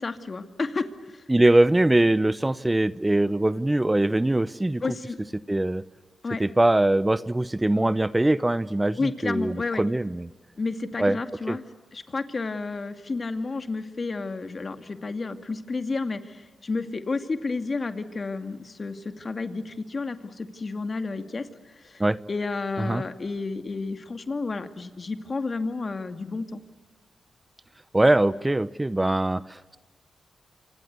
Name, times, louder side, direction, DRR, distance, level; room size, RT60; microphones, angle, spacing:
voice 1, 0.0-1.2 4.8-5.2 6.2-6.4 9.0-9.8 10.6-11.6 11.9-21.5 21.8-22.0 22.3-26.6, left 3 dB, 45° left, 9 dB, 2.4 m, -31 dB
voice 2, 1.3-4.8 5.5-5.8 6.4-10.3 11.0-11.2 11.5-11.6 22.0-22.2 22.8-23.0 27.9-29.8, right 1 dB, 20° right, 17 dB, 0.8 m, -22 dB
28.0 x 25.0 x 8.3 m, 1.2 s
supercardioid pair, 45°, 0 cm